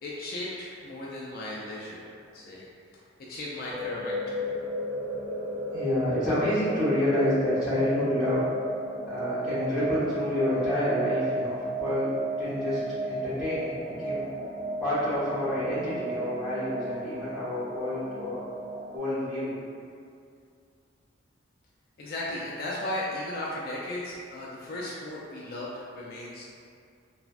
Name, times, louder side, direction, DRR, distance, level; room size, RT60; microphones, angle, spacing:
voice 1, 0.0-2.7 3.3-4.5 22.0-26.4, left 1 dB, 50° left, -5 dB, 0.3 m, -36 dB
sound 1, 3.7-19.0, right 1 dB, 25° right, 0.5 m, -34 dB
voice 2, 5.7-8.5 9.1-12.1 12.4-12.8 13.1-13.8 14.0-14.3 14.8-18.4 18.9-19.5, left 1 dB, 5° right, -15 dB, 1.1 m, -28 dB
3.2 x 2.0 x 2.5 m, 2.4 s
head